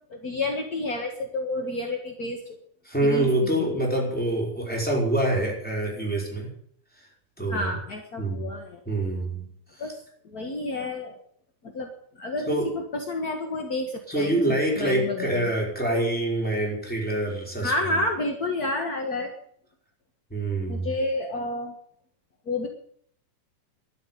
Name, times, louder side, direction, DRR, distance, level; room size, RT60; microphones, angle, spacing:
voice 1, 0.1-2.6 3.0-3.6 7.5-8.8 9.8-11.1 11.6-11.9 12.2-15.5 17.6-19.3 20.7-21.7 22.5-22.7, left 2 dB, 45° left, 4 dB, 1.2 m, -30 dB
voice 2, 2.8-6.5 7.4-7.7 8.2-8.5 8.8-9.5 9.7-9.8 12.5-12.7 14.1-18.0 20.3-20.9, right 1 dB, ahead, -2 dB, 5.1 m, -26 dB
12.5 x 10.0 x 9.5 m, 0.65 s
omnidirectional pair, 3.9 m